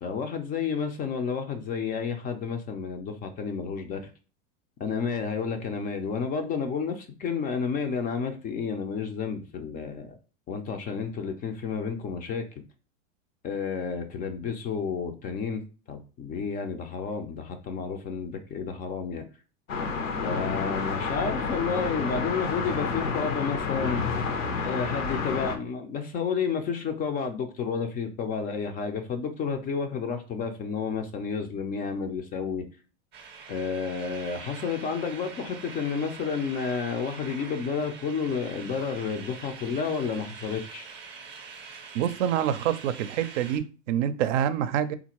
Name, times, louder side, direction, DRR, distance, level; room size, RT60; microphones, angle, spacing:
voice 1, 0.0-4.1 4.8-10.2 10.5-12.5 13.4-19.2 20.2-24.0 24.6-32.7 33.5-40.9, left 6 dB, 25° left, 6 dB, 0.3 m, -31 dB
sound 1, 19.7-25.6, left 5 dB, 85° left, 0.8 m, -29 dB
sound 2, 33.1-43.6, right 5 dB, 30° right, 0.6 m, -44 dB
voice 2, 41.9-44.9, right 10 dB, 70° right, 12 dB, 0.5 m, -26 dB
3.6 x 2.5 x 2.9 m, 0.35 s
hypercardioid pair, 110°, 38 cm